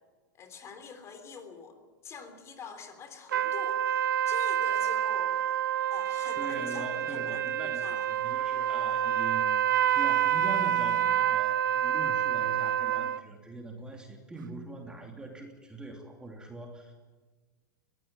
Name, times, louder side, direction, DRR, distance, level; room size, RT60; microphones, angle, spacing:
voice 1, 0.3-1.8 2.0-5.6 5.9-8.1, left 5 dB, 30° left, 7 dB, 3.5 m, -45 dB
sound 1, 3.3-13.2, right 10 dB, 85° right, 0.7 m, -28 dB
voice 2, 6.3-9.5 9.9-16.9, right 2 dB, 10° right, 2 dB, 2.9 m, -42 dB
22.0 x 15.5 x 9.0 m, 1.3 s
hypercardioid pair, 125°, 10 cm